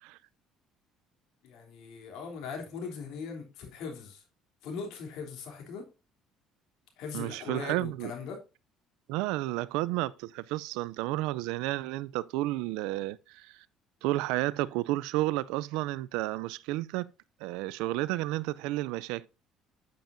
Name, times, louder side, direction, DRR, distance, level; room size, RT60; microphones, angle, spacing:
voice 1, 1.4-4.2 4.6-5.9 7.0-8.4, left 5 dB, 75° left, 3.2 m, -40 dB
voice 2, 7.1-8.1 9.1-13.6 14.0-17.1 17.4-19.3, right 18 dB, 85° right, 0.3 m, -31 dB
9.1 x 8.9 x 2.6 m
cardioid pair, 105°, 0 cm